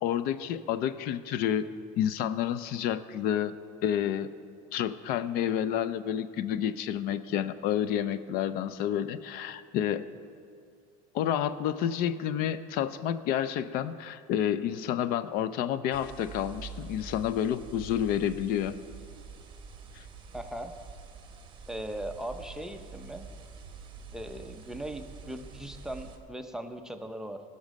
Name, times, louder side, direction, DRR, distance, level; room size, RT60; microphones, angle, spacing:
voice 1, 0.0-1.7 2.0-3.5 3.8-4.3 4.7-10.1 11.1-18.8 19.9-20.0, left 10 dB, 60° left, 14 dB, 0.5 m, -29 dB
sound 1, 15.9-26.2, right 5 dB, 25° right, 1.2 m, -46 dB
voice 2, 20.3-20.7 21.7-23.3 24.1-27.4, right 1 dB, 5° right, 6 dB, 0.6 m, -39 dB
16.0 x 6.5 x 5.2 m, 2.4 s
supercardioid pair, 125°, 18 cm